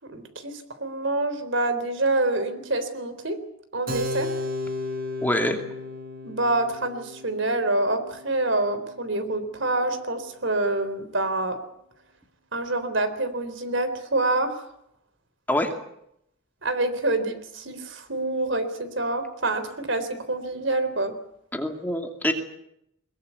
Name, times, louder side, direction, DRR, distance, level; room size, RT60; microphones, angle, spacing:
voice 1, 0.0-3.4 3.7-4.3 6.2-11.6 12.5-14.6 16.6-21.2, right 2 dB, 60° right, 10 dB, 3.8 m, -26 dB
Keyboard (musical), 3.9-10.0, left 2 dB, 45° right, 3.9 m, -35 dB
voice 2, 5.2-5.6 15.5-15.7 21.5-22.3, left 1 dB, 10° left, 4 dB, 2.5 m, -25 dB
22.5 x 22.0 x 8.3 m, 0.76 s
head